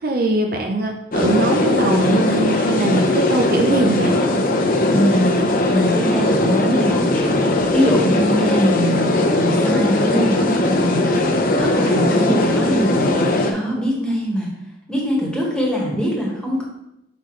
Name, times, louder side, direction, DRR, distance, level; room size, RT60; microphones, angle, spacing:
voice 1, 0.0-4.1, right 2 dB, 50° right, 3 dB, 0.6 m, -21 dB
sound 1, 1.1-13.5, left 2 dB, 50° left, 0.7 m, -19 dB
voice 2, 4.9-5.4 5.7-7.5 7.7-11.3 11.6-14.5 14.9-16.6, equal, 5° left, -4 dB, 1.5 m, -22 dB
5.8 x 5.6 x 3.2 m, 0.84 s
head